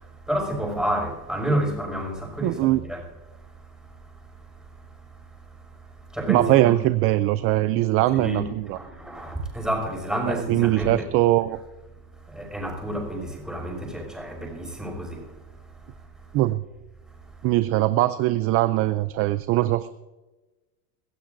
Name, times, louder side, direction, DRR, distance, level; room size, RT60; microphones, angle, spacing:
voice 1, 0.0-3.1 6.1-6.8 8.1-11.1 12.3-15.3, right 1 dB, ahead, 5.9 m, -29 dB
voice 2, 2.4-2.8 6.3-8.8 10.3-11.6 16.3-16.6 17.4-19.9, right 16 dB, 35° right, 0.4 m, -21 dB
24.5 x 14.5 x 2.6 m
supercardioid pair, 130°, 44 cm